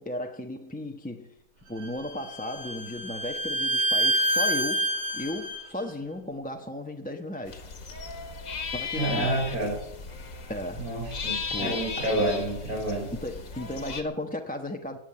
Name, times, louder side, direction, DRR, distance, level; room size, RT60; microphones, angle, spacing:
voice 1, 0.0-1.3 1.7-4.9 5.1-7.6 8.7-9.4 10.5-11.0 11.3-12.3 13.1-15.0, left 1 dB, 5° left, 3 dB, 0.8 m, -35 dB
Bowed string instrument, 1.8-5.6, right 1 dB, 90° right, 2.8 m, -27 dB
sound 1, 7.5-14.0, left 5 dB, 60° left, 2.0 m, -36 dB
voice 2, 8.9-9.8 10.8-13.1, right 1 dB, 65° right, -1 dB, 5.5 m, -29 dB
17.5 x 7.6 x 8.7 m, 0.83 s
omnidirectional pair, 1.6 m